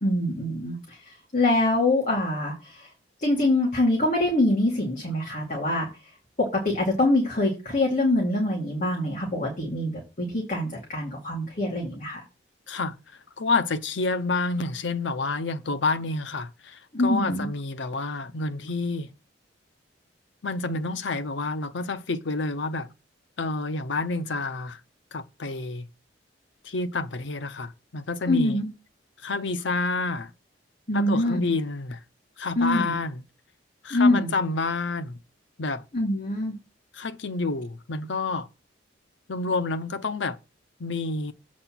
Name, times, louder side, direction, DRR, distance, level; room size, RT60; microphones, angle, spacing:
voice 1, 0.0-2.9 3.2-5.9 6.4-12.2 16.9-17.5 28.3-28.7 30.9-31.5 32.6-33.0 33.9-34.3 35.9-36.5, left 1 dB, 40° left, 2.4 m, -24 dB
voice 2, 12.7-19.1 20.4-22.9 23.4-24.8 25.1-25.9 26.6-28.6 29.2-30.3 30.9-32.0 32.4-33.2 33.8-35.2 35.6-35.8 36.9-38.5 39.3-40.4 40.8-41.3, left 3 dB, 75° left, 0.7 m, -29 dB
7.9 x 4.3 x 5.9 m
head